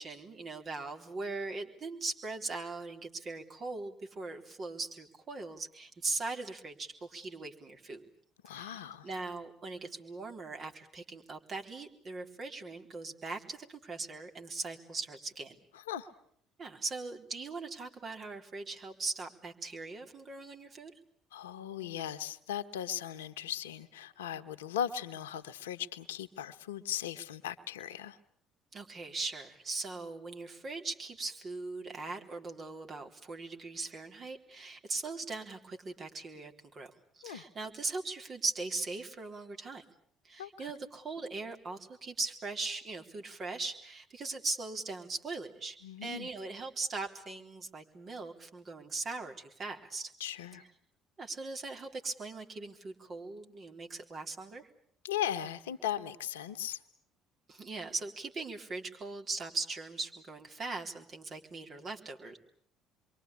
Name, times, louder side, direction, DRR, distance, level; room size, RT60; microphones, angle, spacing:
voice 1, 0.0-8.1 8.5-15.6 16.6-20.9 28.7-39.8 40.2-50.1 51.2-54.7 57.5-62.4, right 3 dB, 45° right, 4 dB, 3.8 m, -40 dB
voice 2, 8.4-9.1 15.9-16.1 21.3-28.2 37.2-37.4 40.4-40.7 45.8-46.3 50.2-50.6 55.0-56.8, left 10 dB, 85° left, 11 dB, 1.2 m, -38 dB
27.5 x 23.5 x 8.5 m, 0.65 s
hypercardioid pair, 60°, 0 cm